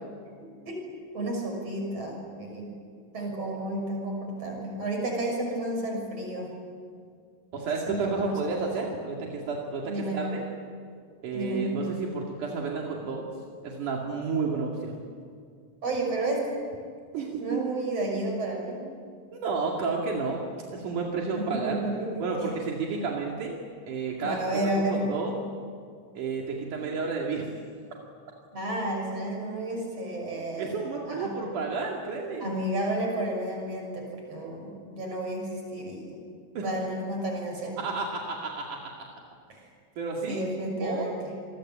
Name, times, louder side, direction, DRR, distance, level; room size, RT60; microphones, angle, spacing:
voice 1, 1.1-2.7 3.1-6.5 7.9-8.8 9.9-10.2 11.3-11.8 15.8-16.5 17.1-18.8 21.4-22.3 24.2-25.1 28.5-30.7 31.1-31.3 32.4-36.2 36.6-37.8 39.5-39.7 40.3-41.2, right 1 dB, 50° right, 1 dB, 7.3 m, -31 dB
voice 2, 7.5-10.4 11.2-13.3 13.6-15.0 17.1-17.6 19.3-20.4 20.7-21.8 22.2-23.6 23.9-25.3 26.2-27.5 30.6-32.5 36.6-36.7 37.8-39.1 40.0-40.4 40.8-41.1, right 4 dB, 85° right, -1 dB, 3.9 m, -31 dB
27.5 x 22.5 x 8.8 m, 2.2 s
omnidirectional pair, 3.5 m